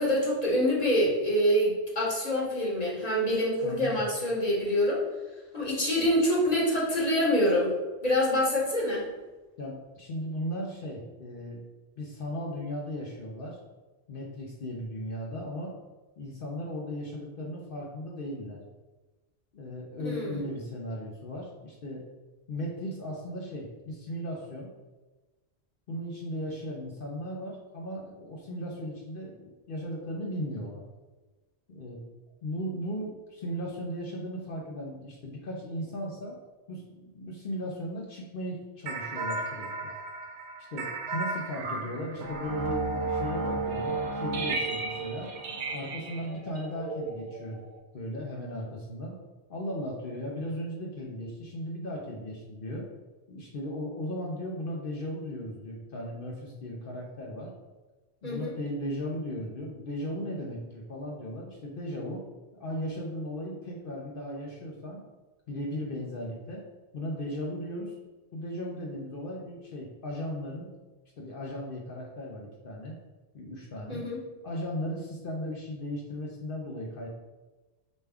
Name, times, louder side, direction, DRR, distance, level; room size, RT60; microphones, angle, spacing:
voice 1, 0.0-5.0 5.5-7.7 8.0-9.0 20.0-20.4 58.2-58.5 73.9-74.2, equal, 35° left, -5 dB, 1.1 m, -26 dB
voice 2, 3.6-4.0 9.6-11.6 12.0-13.6 14.1-15.7 16.2-18.6 19.5-22.0 22.5-24.7 25.9-30.8 31.7-32.0 32.4-36.4 36.7-39.7 40.7-45.3 45.7-47.7 47.9-49.2 49.5-52.9 53.3-57.5 58.2-62.2 62.5-65.0 65.5-66.6 66.9-67.9 68.3-70.7 71.2-72.9 73.3-74.1 74.4-77.1, equal, 55° left, -2 dB, 0.7 m, -36 dB
sound 1, 38.9-47.8, right 3 dB, 70° right, 0.9 m, -33 dB
5.1 x 2.3 x 3.4 m, 1.2 s
omnidirectional pair, 1.2 m